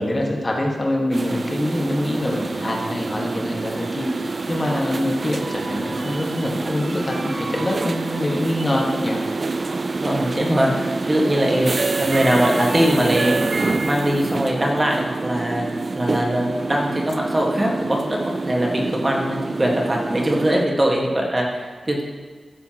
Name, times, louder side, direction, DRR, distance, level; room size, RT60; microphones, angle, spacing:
voice 1, 0.0-9.2 11.8-12.0 16.1-16.2, left 1 dB, 30° left, -1 dB, 1.5 m, -25 dB
sound 1, 1.1-20.7, right 3 dB, 45° right, 0.4 m, -27 dB
voice 2, 9.9-11.7 12.0-13.4 13.8-15.6 15.9-22.0, right 1 dB, 25° right, -1 dB, 1.6 m, -21 dB
14.0 x 6.9 x 2.9 m, 1.5 s
wide cardioid pair, 75°, 0 cm